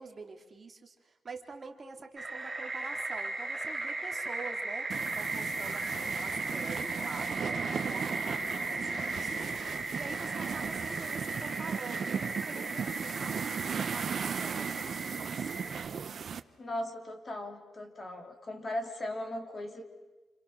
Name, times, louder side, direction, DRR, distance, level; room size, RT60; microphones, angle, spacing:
voice 1, 0.0-4.9 5.1-9.3 9.6-15.5, right 4 dB, 35° right, 4 dB, 2.4 m, -46 dB
sound 1, 2.2-15.8, right 2 dB, 10° right, 3.0 m, -37 dB
sound 2, 4.9-16.4, right 7 dB, 55° right, 0.9 m, -37 dB
voice 2, 16.6-19.8, left 1 dB, 30° left, 5 dB, 2.9 m, -38 dB
28.5 x 27.5 x 6.3 m, 1.2 s
cardioid pair, 120°, 0 cm